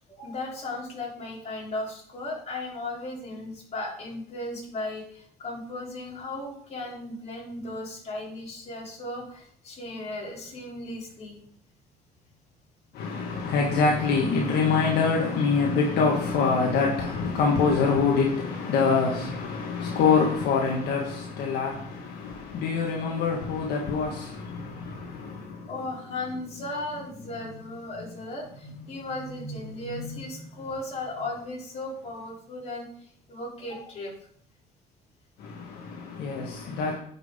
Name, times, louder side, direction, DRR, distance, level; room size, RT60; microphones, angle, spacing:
voice 1, 0.2-11.4 24.9-32.8 33.3-34.1, left 2 dB, 40° left, 3.5 m, -36 dB
voice 2, 12.9-25.7 35.4-37.0, left 5 dB, 75° left, 1.5 m, -25 dB
9.7 x 5.9 x 3.6 m
cardioid pair, 110°, 17 cm